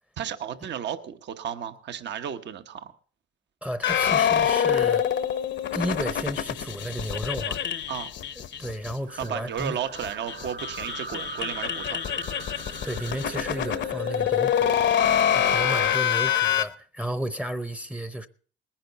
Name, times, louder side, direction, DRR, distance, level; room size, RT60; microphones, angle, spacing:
voice 1, 0.2-2.9 7.9-8.1 9.2-12.0 15.4-16.0, right 8 dB, 60° right, 1.0 m, -34 dB
voice 2, 3.6-5.1 5.7-7.6 8.4-9.8 12.8-15.0 15.3-18.3, right 1 dB, 5° right, 0.7 m, -33 dB
sound 1, 3.8-8.9 9.2-9.3 9.6-9.7 9.9-16.6, left 9 dB, 65° left, 0.8 m, -25 dB
sound 2, 9.1-16.0, right 4 dB, 80° right, 4.1 m, -42 dB
19.0 x 10.5 x 4.0 m
cardioid pair, 90°, 20 cm